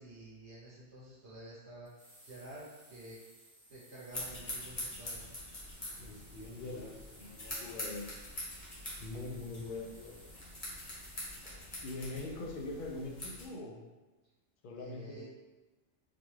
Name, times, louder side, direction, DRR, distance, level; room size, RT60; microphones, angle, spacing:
voice 1, 0.0-3.2 3.7-5.3 14.7-15.2, right 2 dB, 65° right, -7 dB, 1.1 m, -50 dB
sound 1, 1.9-11.5, right 1 dB, 25° right, 0.8 m, -60 dB
sound 2, 4.1-13.5, left 1 dB, 35° left, 1.0 m, -44 dB
voice 2, 6.0-8.1 9.0-10.2 11.8-13.8 14.6-15.2, left 2 dB, 55° left, 0 dB, 0.6 m, -43 dB
4.0 x 2.3 x 3.1 m, 1.2 s
omnidirectional pair, 1.3 m